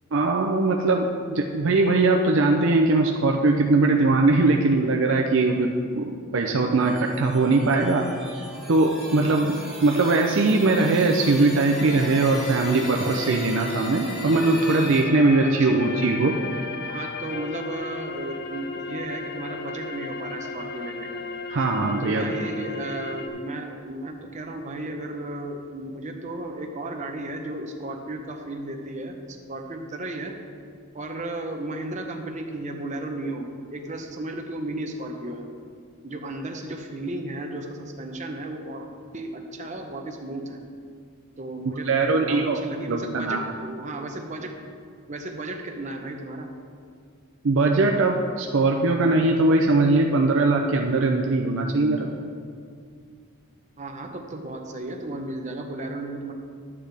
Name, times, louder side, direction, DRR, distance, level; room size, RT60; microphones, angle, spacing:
voice 1, 0.1-8.1 8.3-16.4 21.5-22.3 41.8-42.6 42.9-43.5 47.4-52.1, right 3 dB, 55° right, 2 dB, 0.5 m, -21 dB
sound 1, 6.8-15.0, right 1 dB, ahead, 1.9 m, -40 dB
sound 2, 11.7-23.3, left 3 dB, 45° left, 0.6 m, -35 dB
voice 2, 15.4-15.9 16.9-21.2 22.0-30.4 30.9-35.5 36.0-40.6 41.4-44.6 45.1-46.5 53.8-56.3, right 2 dB, 35° right, 3 dB, 0.8 m, -34 dB
11.5 x 8.5 x 3.4 m, 2.2 s
head